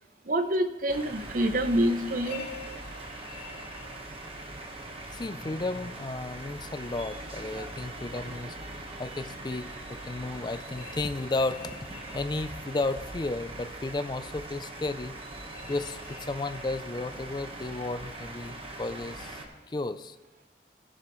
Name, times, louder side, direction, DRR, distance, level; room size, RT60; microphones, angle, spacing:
voice 1, 0.3-2.4, right 1 dB, 50° right, 9 dB, 0.7 m, -26 dB
sound 1, 0.9-19.4, right 2 dB, 30° right, 1.2 m, -41 dB
sound 2, 2.2-4.7 10.7-12.9 15.5-17.0, left 4 dB, 70° left, 2.5 m, -47 dB
voice 2, 5.1-8.6 9.0-11.9 12.1-15.2 15.7-19.4 19.7-20.2, left 2 dB, 25° left, 12 dB, 0.4 m, -33 dB
19.0 x 7.0 x 3.1 m, 1.1 s
head